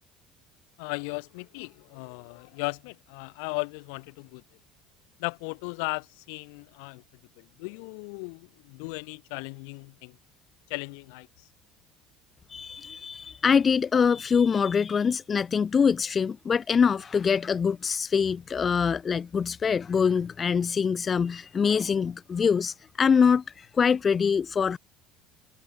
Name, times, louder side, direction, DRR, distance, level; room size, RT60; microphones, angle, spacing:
voice 1, 0.8-4.4 5.2-7.0 7.4-10.2 10.7-11.5, left 37 dB, 85° left, 4.2 m, -36 dB
voice 2, 12.5-24.8, left 6 dB, 30° left, 0.7 m, -24 dB
cardioid pair, 130°, 0 cm